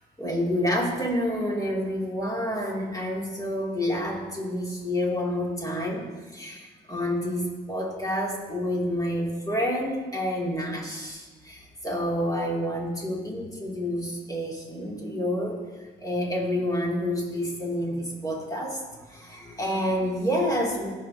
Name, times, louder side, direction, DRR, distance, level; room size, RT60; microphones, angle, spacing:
voice 1, 0.2-6.0 6.3-15.6 16.0-18.8 19.1-20.9, equal, 15° left, -3 dB, 2.8 m, -28 dB
17.0 x 6.0 x 2.9 m, 1.4 s
cardioid pair, 80°, 20 cm